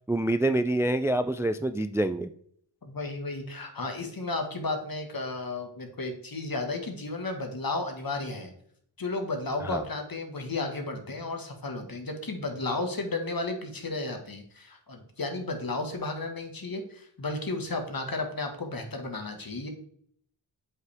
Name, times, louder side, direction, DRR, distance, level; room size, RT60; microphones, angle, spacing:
voice 1, 0.1-2.3 9.6-9.8, right 1 dB, 5° right, 10 dB, 0.3 m, -26 dB
voice 2, 2.8-8.5 9.0-19.7, left 2 dB, 50° left, 4 dB, 1.7 m, -33 dB
7.6 x 5.5 x 3.5 m, 0.64 s
cardioid pair, 45°, 45 cm